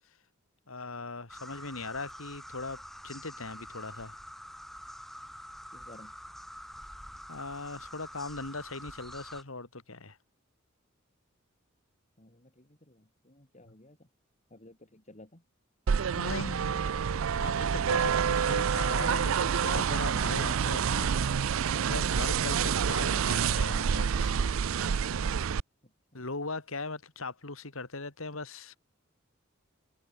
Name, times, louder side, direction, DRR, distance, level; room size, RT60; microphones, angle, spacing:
voice 1, 0.7-4.2 7.3-10.2 16.1-16.7 17.4-21.5 21.8-24.5 26.1-28.8, left 3 dB, 75° left, 2.7 m, -39 dB
sound 1, 1.3-9.4, equal, ahead, 1.4 m, -46 dB
voice 2, 5.7-6.2 12.2-14.1 14.5-15.4 16.0-16.9 26.1-26.2, left 1 dB, 35° left, 4.4 m, -54 dB
sound 2, 15.9-25.6, right 7 dB, 70° right, 0.5 m, -28 dB
head